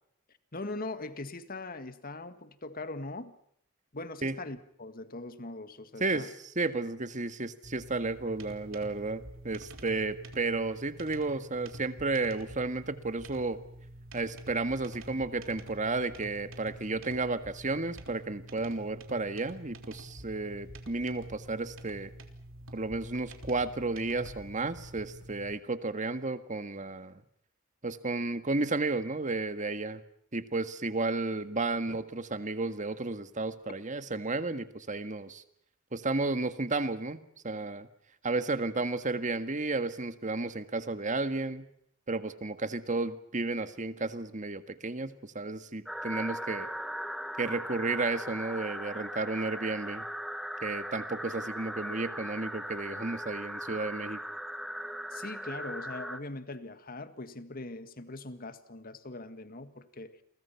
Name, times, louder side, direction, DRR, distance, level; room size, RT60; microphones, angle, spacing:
voice 1, 0.5-3.4 3.9-6.3 55.1-60.2, left 2 dB, 45° left, 11 dB, 1.9 m, -41 dB
voice 2, 6.0-13.6 14.1-22.1 22.7-27.2 27.8-30.0 30.3-35.4 35.9-37.9 38.2-41.7 42.1-46.7 47.4-50.0 50.6-54.2, right 3 dB, 35° right, 10 dB, 1.7 m, -33 dB
sound 1, 7.6-25.5, right 1 dB, 65° right, 3.6 m, -48 dB
sound 2, 45.9-56.2, equal, ahead, 1.3 m, -39 dB
29.5 x 23.5 x 5.8 m, 0.69 s
head